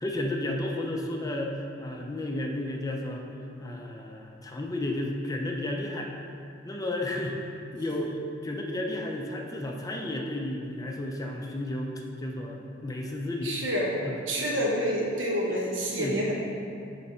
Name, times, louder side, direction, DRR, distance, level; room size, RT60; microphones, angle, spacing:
voice 1, 0.0-3.2 3.6-6.1 6.6-11.9 12.2-13.6 14.0-14.2 15.5-15.6 16.0-16.2, left 1 dB, 20° left, 1 dB, 0.4 m, -32 dB
voice 2, 13.4-14.0 14.3-16.3, equal, 70° right, -2 dB, 1.0 m, -28 dB
6.9 x 3.2 x 4.2 m, 2.5 s
head